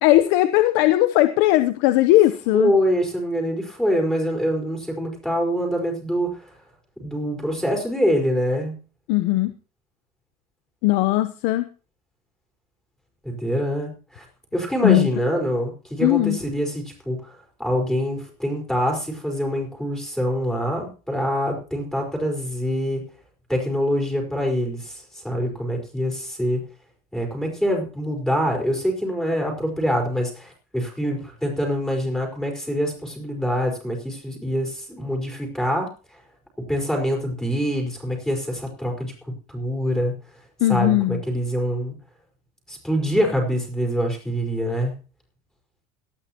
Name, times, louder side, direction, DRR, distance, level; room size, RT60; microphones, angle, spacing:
voice 1, 0.0-2.7 9.1-9.5 10.8-11.7 14.8-15.1 16.0-16.4 40.6-41.2, left 16 dB, 65° left, 11 dB, 0.9 m, -18 dB
voice 2, 2.5-6.5 7.0-8.8 13.2-14.2 14.5-23.0 23.5-26.6 27.1-35.9 36.7-39.1 39.5-40.1 40.7-41.9 42.7-44.9, equal, 5° left, 0 dB, 4.8 m, -25 dB
18.0 x 13.0 x 3.0 m, 0.36 s
cardioid pair, 160°, 19 cm